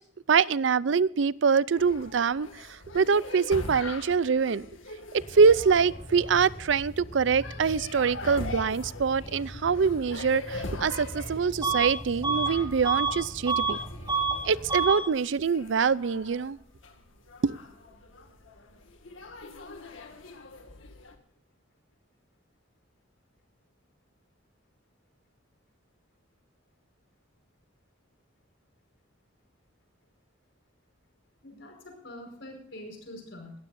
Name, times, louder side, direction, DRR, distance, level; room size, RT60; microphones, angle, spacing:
voice 1, 0.3-4.7 5.3-13.8 14.4-16.6 17.4-17.6, right 5 dB, 70° right, 21 dB, 0.5 m, -24 dB
sound 1, 1.8-21.2, left 2 dB, 85° left, 1.9 m, -43 dB
sound 2, 5.1-14.8, equal, 35° left, 5.1 m, -43 dB
Bus / Alarm, 11.6-11.9 12.2-13.8 14.1-14.4 14.7-15.0, right 5 dB, 25° right, 4.2 m, -27 dB
voice 2, 31.4-33.5, left 1 dB, 65° left, 3 dB, 4.9 m, -44 dB
20.0 x 14.5 x 2.6 m, 0.63 s
head